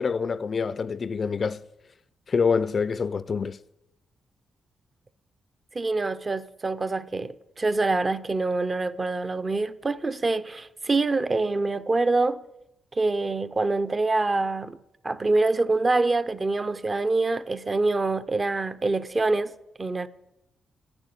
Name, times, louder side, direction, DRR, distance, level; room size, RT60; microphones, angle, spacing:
voice 1, 0.0-1.6 2.3-3.6, left 5 dB, 40° left, 0.4 m, -26 dB
voice 2, 5.7-12.4 13.0-14.8 15.0-20.1, right 3 dB, 25° right, 0.6 m, -25 dB
10.5 x 10.5 x 7.9 m
cardioid pair, 135°, 0 cm